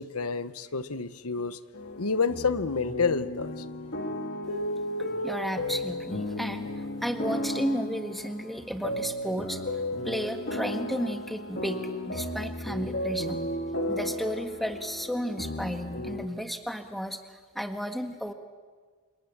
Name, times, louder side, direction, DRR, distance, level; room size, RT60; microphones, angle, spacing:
voice 1, 0.0-1.6 2.0-3.6, left 5 dB, 85° left, 13 dB, 1.1 m, -29 dB
sound 1, 1.7-16.3, left 1 dB, 50° left, 2.2 m, -34 dB
voice 2, 5.2-9.6 10.0-11.8 12.1-13.4 13.9-18.3, equal, ahead, 6 dB, 1.7 m, -33 dB
29.5 x 27.5 x 7.4 m, 1.5 s
head